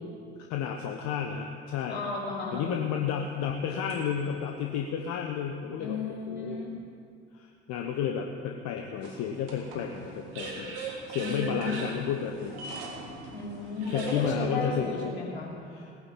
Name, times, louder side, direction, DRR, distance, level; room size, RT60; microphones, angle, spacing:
voice 1, 0.5-2.0 2.5-6.0 6.3-6.6 7.4-10.8 11.1-12.6 13.9-15.2 15.7-15.8, left 7 dB, 55° left, 3 dB, 1.2 m, -32 dB
voice 2, 1.9-2.7 5.8-6.7 11.2-11.9 13.3-15.5, left 3 dB, 85° left, -4 dB, 3.1 m, -34 dB
sound 1, 2.7-4.4 5.1-5.2 9.0-14.3, right 3 dB, 65° right, 3.5 m, -40 dB
18.5 x 9.8 x 7.5 m, 2.3 s
figure-of-eight pair, 60°, 32 cm